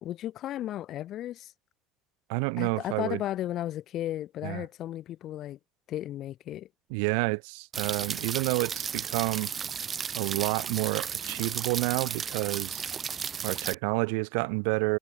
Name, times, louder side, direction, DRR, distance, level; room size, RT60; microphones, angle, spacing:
voice 1, 0.0-1.5 2.6-5.6 5.9-6.7, left 13 dB, 55° left, 1.0 m, -34 dB
voice 2, 2.3-3.2 4.4-4.6 6.9-9.5 10.1-12.9 13.4-15.0, right 37 dB, 80° right, 0.9 m, -29 dB
sound 1, 7.7-13.7, right 7 dB, 35° right, 2.0 m, -34 dB
supercardioid pair, 85°, 0 cm